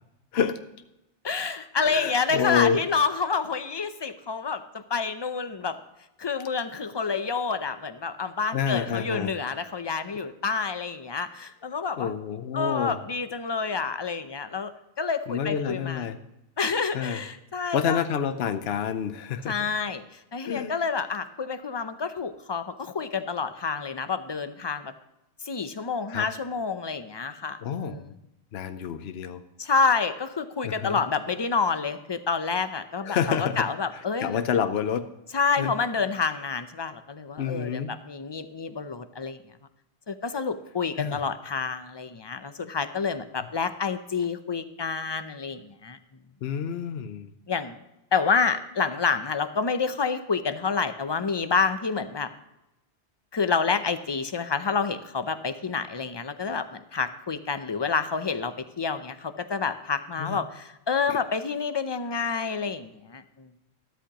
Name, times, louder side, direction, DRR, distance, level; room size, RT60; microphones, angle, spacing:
voice 1, 1.2-5.8 6.2-12.1 12.5-14.7 15.0-16.1 16.6-18.1 19.5-20.0 20.3-24.9 25.4-28.2 29.6-34.4 35.3-39.4 40.1-46.0 47.5-47.8 48.1-52.3 53.3-63.5, left 5 dB, 30° left, 10 dB, 0.5 m, -28 dB
voice 2, 1.9-2.8 8.5-9.4 12.0-13.0 15.3-16.2 16.9-17.2 17.7-19.7 20.4-20.8 26.1-26.3 27.6-28.0 28.5-29.4 30.6-31.0 33.0-33.7 34.2-35.1 35.6-35.7 37.4-37.9 41.0-41.2 46.4-47.3 60.2-60.4 61.1-61.2, left 7 dB, 70° left, 10 dB, 0.9 m, -28 dB
13.0 x 12.5 x 3.0 m, 0.92 s
omnidirectional pair, 1.1 m